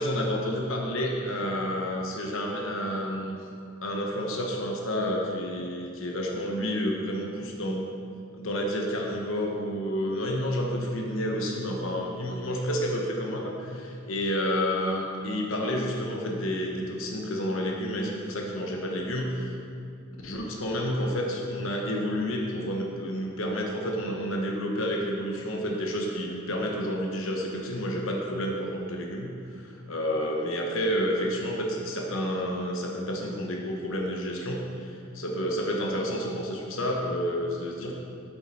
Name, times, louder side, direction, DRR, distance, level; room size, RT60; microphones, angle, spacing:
voice 1, 0.0-3.4 3.8-7.8 8.3-19.6 20.2-38.0, equal, 80° left, 0 dB, 1.1 m, -30 dB
8.1 x 8.1 x 4.3 m, 2.4 s
head